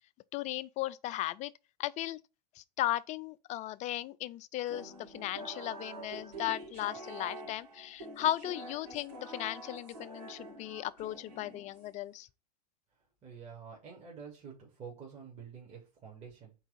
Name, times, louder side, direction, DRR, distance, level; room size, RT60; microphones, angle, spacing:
voice 1, 0.3-1.5 1.8-2.2 2.6-12.3, left 14 dB, 35° left, 0.5 m, -36 dB
sound 1, 4.7-12.0, right 2 dB, 80° right, 3.4 m, -47 dB
voice 2, 13.2-16.5, right 6 dB, 35° right, 2.7 m, -48 dB
4.6 x 4.0 x 5.4 m
hypercardioid pair, 95°, 21 cm